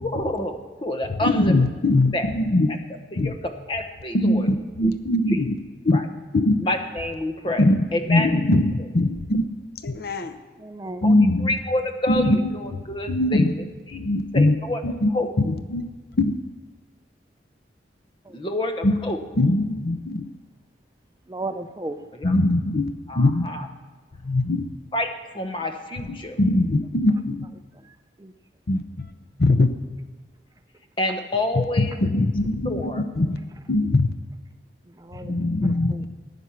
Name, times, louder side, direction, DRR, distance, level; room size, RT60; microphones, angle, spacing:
voice 1, 0.0-1.6 2.1-2.3 2.7-2.8 3.1-4.5 4.8-4.9 5.3-5.4 5.9-6.1 6.5-8.3 11.0-13.6 13.9-14.0 14.3-14.8 15.1-15.3 18.3-19.2 22.1-22.4 23.1-23.7 24.9-26.4 31.0-32.0 32.6-33.0, left 1 dB, 30° left, 6 dB, 1.1 m, -28 dB
voice 2, 1.2-2.7 3.2-3.3 4.1-5.6 5.8-6.0 6.3-6.5 7.6-7.8 8.1-9.4 9.8-10.4 11.0-11.5 12.1-12.4 13.1-13.5 13.9-14.6 14.8-15.1 15.4-15.8 16.2-16.3 18.8-18.9 19.4-20.3 22.2-23.5 24.2-24.7 26.4-27.5 28.7-29.1 29.4-29.7 31.8-33.4 33.7-34.1 35.2-36.1, left 2 dB, 55° left, 8 dB, 0.7 m, -21 dB
voice 3, 10.6-11.1 18.3-18.4 21.3-22.0 28.2-28.3 35.1-35.7, right 2 dB, 20° right, 8 dB, 0.5 m, -34 dB
14.5 x 9.7 x 5.8 m, 1.3 s
head